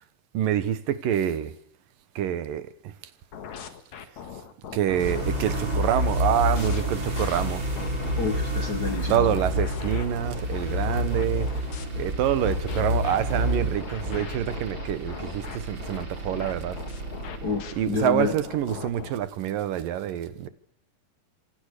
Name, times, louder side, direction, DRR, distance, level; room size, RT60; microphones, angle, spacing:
voice 1, 0.3-1.5 2.2-2.7 4.7-7.7 9.1-11.5 12.0-16.8 17.8-20.5, right 10 dB, 80° right, 3.0 m, -26 dB
sound 1, 3.3-8.1 8.6-11.9 12.4-19.1, left 8 dB, 60° left, 2.9 m, -40 dB
sound 2, 4.9-18.8, equal, 35° right, 5.0 m, -29 dB
voice 2, 8.2-9.4 17.4-18.3, left 4 dB, 40° left, 1.7 m, -29 dB
27.0 x 24.5 x 6.7 m
omnidirectional pair, 3.9 m